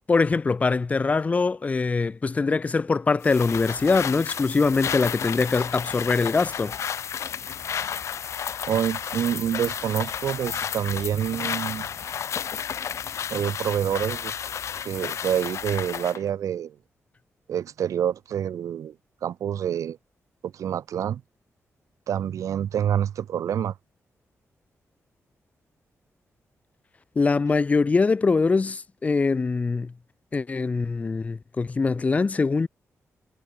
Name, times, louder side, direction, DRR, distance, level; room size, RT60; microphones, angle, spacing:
voice 1, 0.1-6.8 27.1-29.9 30.3-32.7, left 4 dB, 25° left, 1.5 m, -23 dB
sound 1, 3.2-16.2, left 8 dB, 65° left, 3.9 m, -32 dB
voice 2, 8.7-11.9 13.3-14.3 14.8-16.8 17.5-19.0 19.2-20.0 20.4-21.2 22.1-23.7, right 9 dB, 85° right, 2.0 m, -27 dB
wide cardioid pair, 170°, 5 cm